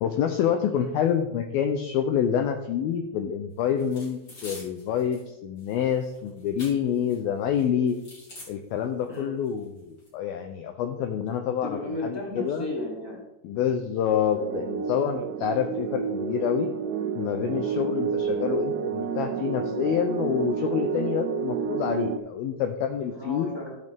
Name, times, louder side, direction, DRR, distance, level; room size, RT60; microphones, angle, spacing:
voice 1, 0.0-8.0 8.5-12.7 13.4-16.7 17.2-23.5, left 8 dB, 80° left, 6 dB, 2.2 m, -27 dB
sound 1, 3.8-5.2 5.6-7.2 7.5-8.5 9.1-9.2 9.5-10.1, left 1 dB, 30° left, 4.1 m, -46 dB
voice 2, 11.6-13.2 18.2-18.5 23.1-23.7, left 1 dB, 10° right, -4 dB, 1.8 m, -34 dB
sound 2, 14.3-22.2, right 6 dB, 80° right, 2.8 m, -29 dB
16.5 x 6.7 x 3.5 m, 0.96 s
omnidirectional pair, 5.0 m